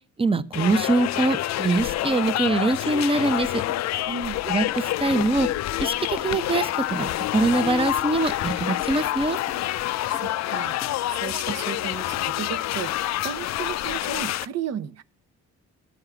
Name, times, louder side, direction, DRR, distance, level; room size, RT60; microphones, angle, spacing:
voice 1, 0.2-3.6 4.5-5.5 5.8-9.4, right 3 dB, 20° right, 0.7 m, -23 dB
sound 1, 0.5-14.5, left 14 dB, 60° left, 0.4 m, -27 dB
sound 2, 2.3-2.4 3.0-3.1 3.7-3.8 4.7-4.8 5.5-5.6 6.2-6.3 6.8-7.0 7.5-7.6 8.1-8.3 8.8-8.9 9.5-9.6 10.1-10.3 10.8-11.0 11.5-11.6 12.1-12.2, left 2 dB, 20° left, 0.9 m, -42 dB
voice 2, 4.1-4.4 10.1-12.9 13.2-15.0, right 8 dB, 55° right, 0.8 m, -34 dB
12.5 x 4.9 x 6.8 m
cardioid pair, 90°, 30 cm